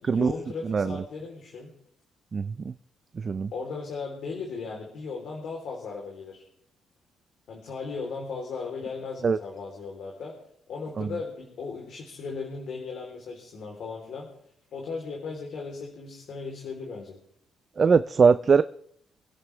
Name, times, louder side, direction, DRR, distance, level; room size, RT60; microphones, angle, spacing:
voice 1, 0.0-1.7 3.5-6.4 7.5-10.3 10.7-14.3 14.7-17.2, left 4 dB, 65° left, -1 dB, 3.5 m, -37 dB
voice 2, 2.3-2.7 3.2-3.5 9.2-9.4 11.0-11.1 17.8-18.6, right 5 dB, 40° right, 12 dB, 0.5 m, -21 dB
26.0 x 10.5 x 3.4 m, 0.68 s
cardioid pair, 90°, 0 cm